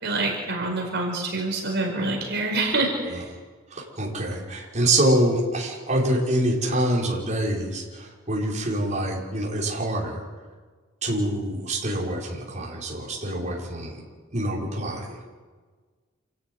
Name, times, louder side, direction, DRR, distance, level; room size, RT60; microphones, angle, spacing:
voice 1, 0.0-3.2, right 2 dB, 60° right, 1 dB, 5.2 m, -26 dB
voice 2, 3.7-10.2 11.0-14.0 14.3-15.2, right 1 dB, 35° right, -4 dB, 5.5 m, -25 dB
28.5 x 14.0 x 9.6 m, 1.4 s
head